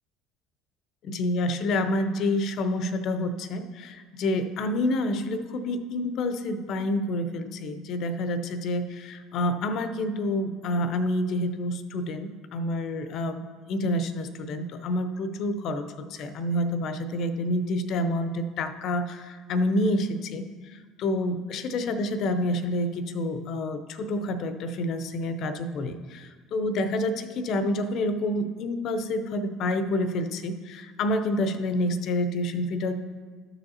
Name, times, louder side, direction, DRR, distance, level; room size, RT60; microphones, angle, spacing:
voice 1, 1.0-33.0, left 1 dB, 55° left, 10 dB, 0.7 m, -28 dB
13.0 x 7.0 x 2.8 m, 1.5 s
hypercardioid pair, 60°, 0 cm